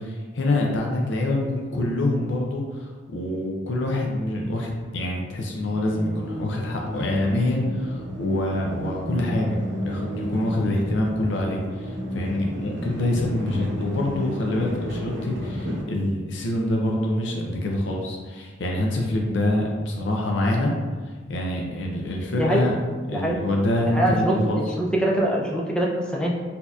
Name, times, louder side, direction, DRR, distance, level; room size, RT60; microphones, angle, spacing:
voice 1, 0.0-20.7 21.3-24.7, left 1 dB, 70° left, 0 dB, 0.5 m, -25 dB
sound 1, 5.7-15.8, equal, 70° right, 0.7 m, -33 dB
voice 2, 23.1-23.4 23.9-26.3, right 1 dB, 5° left, -3 dB, 0.4 m, -23 dB
4.1 x 2.8 x 2.3 m, 1.4 s
head